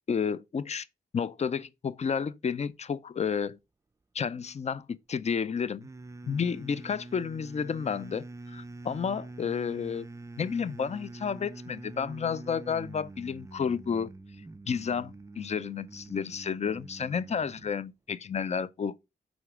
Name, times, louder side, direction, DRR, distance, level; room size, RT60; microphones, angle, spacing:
voice 1, 0.1-0.9 1.1-3.6 4.1-5.9 6.3-10.1 10.4-14.1 14.7-18.9, left 6 dB, 40° left, 0.4 m, -31 dB
sound 1, 5.8-17.7, right 2 dB, 15° right, 0.4 m, -45 dB
7.9 x 5.1 x 3.6 m
wide cardioid pair, 130°, 18 cm